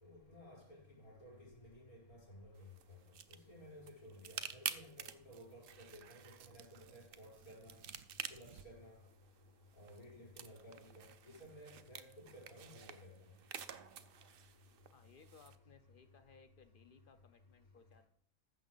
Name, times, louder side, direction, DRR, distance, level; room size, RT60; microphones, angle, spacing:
voice 1, 0.0-2.5 2.9-3.0 3.3-7.8 8.3-9.0 9.8-13.1, equal, 85° left, 5.3 m, -56 dB
sound 1, 2.5-15.6, right 8 dB, 55° right, 0.6 m, -50 dB
Tearing, 5.2-9.0, right 10 dB, 75° right, 1.0 m, -63 dB
voice 2, 14.9-18.0, left 5 dB, 55° left, 0.6 m, -63 dB
14.5 x 6.3 x 3.9 m
omnidirectional pair, 1.5 m